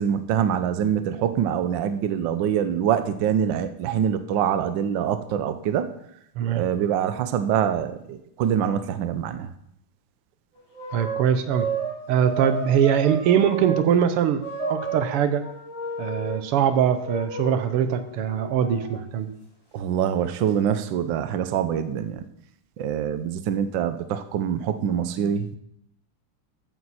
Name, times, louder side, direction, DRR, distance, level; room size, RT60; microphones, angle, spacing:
voice 1, 0.0-5.9 6.5-9.5 19.7-22.2 22.8-25.6, right 9 dB, 65° right, 10 dB, 1.4 m, -25 dB
sound 1, 10.6-13.8 14.4-16.4 17.0-19.0, right 3 dB, 15° left, 3.6 m, -32 dB
voice 2, 10.9-11.7 12.1-15.4 16.0-19.3, right 8 dB, 85° right, 10 dB, 1.9 m, -22 dB
14.0 x 9.2 x 4.2 m, 0.75 s
omnidirectional pair, 2.4 m